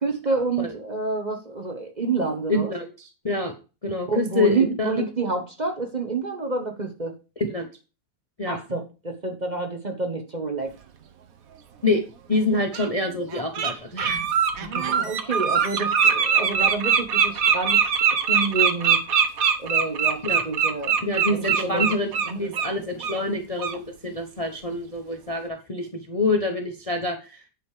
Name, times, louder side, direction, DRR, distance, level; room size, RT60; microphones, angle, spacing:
voice 1, 0.0-2.7 4.1-7.1 8.5-10.7 14.5-17.8 18.3-19.0 19.6-21.0 21.3-21.9 22.3-22.4, right 3 dB, 30° right, 3 dB, 1.2 m, -28 dB
voice 2, 2.5-3.5 3.8-5.1 7.4-7.7 8.4-8.6 11.8-12.0 12.3-14.3 14.6-15.1 20.2-20.4 21.0-27.4, left 2 dB, 25° left, 5 dB, 0.8 m, -26 dB
Bird, 11.9-12.0 12.7-12.9 13.3-13.7 14.0-22.7 23.0-23.2 23.6-23.8, right 7 dB, 60° right, 1.4 m, -22 dB
9.3 x 5.2 x 4.9 m, 0.32 s
omnidirectional pair, 1.8 m